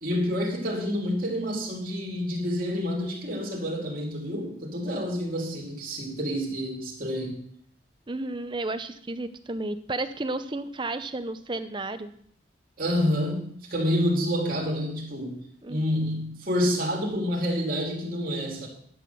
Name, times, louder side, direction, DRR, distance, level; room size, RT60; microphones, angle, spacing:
voice 1, 0.0-7.4 12.8-15.4 15.7-18.7, equal, 50° right, -2 dB, 3.1 m, -28 dB
voice 2, 8.1-12.1 15.6-15.8, right 2 dB, 25° right, 10 dB, 0.6 m, -32 dB
11.5 x 6.0 x 7.0 m, 0.62 s
head